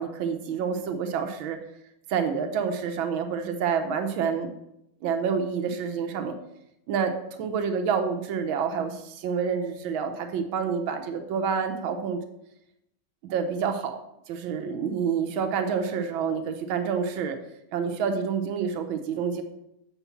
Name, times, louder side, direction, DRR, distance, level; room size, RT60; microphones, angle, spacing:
voice 1, 0.0-1.6 2.1-4.5 5.0-6.4 6.9-12.2 13.2-14.0 14.3-17.4 17.7-19.4, right 6 dB, 85° right, 7 dB, 1.6 m, -28 dB
7.1 x 5.1 x 7.0 m, 0.83 s
omnidirectional pair, 2.2 m